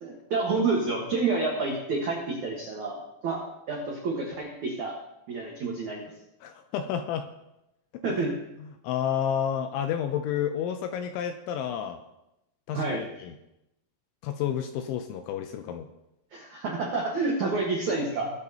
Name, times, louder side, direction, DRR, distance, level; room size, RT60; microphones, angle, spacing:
voice 1, 0.0-3.0 3.2-3.4 3.7-4.9 5.3-6.1 8.0-8.4 12.7-13.0 16.3-18.3, right 3 dB, 80° right, -1 dB, 1.7 m, -28 dB
voice 2, 6.4-7.3 8.1-8.2 8.6-12.0 12.7-12.8 13.2-13.3 14.2-15.9, left 9 dB, 80° left, 7 dB, 2.7 m, -30 dB
20.0 x 8.7 x 2.9 m, 0.89 s
omnidirectional pair, 5.9 m